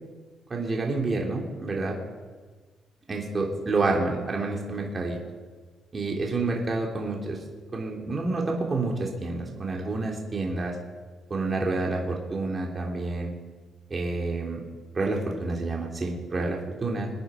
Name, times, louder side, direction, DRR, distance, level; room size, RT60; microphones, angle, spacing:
voice 1, 0.5-2.0 3.1-5.2 5.9-7.4 7.7-10.7 11.3-13.3 13.9-14.6 14.9-17.1, right 3 dB, 30° right, -1 dB, 3.2 m, -28 dB
24.0 x 10.0 x 5.1 m, 1.4 s
cardioid pair, 90°, 0 cm